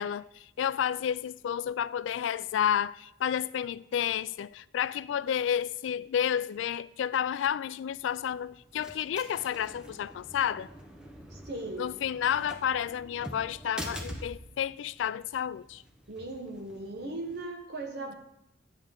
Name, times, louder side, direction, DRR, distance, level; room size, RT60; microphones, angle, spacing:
voice 1, 0.0-10.7 11.8-15.8, left 9 dB, 85° left, 0.3 m, -31 dB
sound 1, 7.8-17.4, equal, 5° right, 0.8 m, -46 dB
voice 2, 11.3-11.9 16.1-18.1, right 2 dB, 60° right, 1.1 m, -38 dB
11.5 x 8.0 x 3.5 m
head